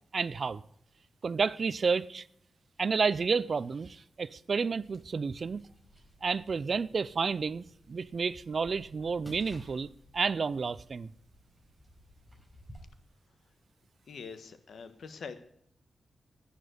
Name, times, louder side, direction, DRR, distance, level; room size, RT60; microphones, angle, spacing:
voice 1, 0.1-0.6 1.2-2.2 2.8-5.6 6.2-9.9 10.1-11.1, right 5 dB, 55° right, 0.5 m, -30 dB
sound 1, 4.8-12.8, equal, 5° left, 4.8 m, -56 dB
voice 2, 14.1-15.3, left 5 dB, 80° left, 1.5 m, -44 dB
11.5 x 10.0 x 9.3 m
wide cardioid pair, 95°, 0 cm